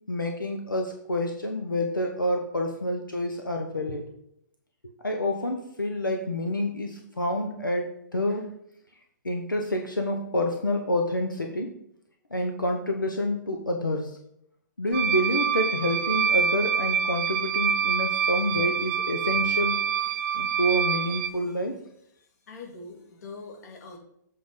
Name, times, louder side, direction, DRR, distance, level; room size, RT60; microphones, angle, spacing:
voice 1, 0.1-4.1 5.0-8.5 9.2-11.7 12.3-14.2 14.8-19.8 20.3-21.7, left 1 dB, 90° left, 3 dB, 1.0 m, -28 dB
sound 1, 14.9-21.3, right 7 dB, 40° right, 0.7 m, -26 dB
voice 2, 22.5-24.0, left 3 dB, 50° left, 0 dB, 2.2 m, -43 dB
7.8 x 3.9 x 5.2 m, 0.73 s
figure-of-eight pair, 120°, 10 cm